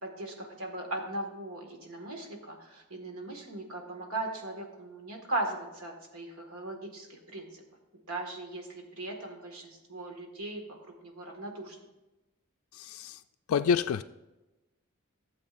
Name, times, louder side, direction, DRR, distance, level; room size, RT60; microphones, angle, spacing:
voice 1, 0.0-7.6 8.1-11.8, right 2 dB, 80° right, 2 dB, 1.8 m, -38 dB
voice 2, 12.7-13.2 13.5-14.0, left 6 dB, 70° left, 8 dB, 0.3 m, -28 dB
15.5 x 7.6 x 2.6 m, 1.0 s
head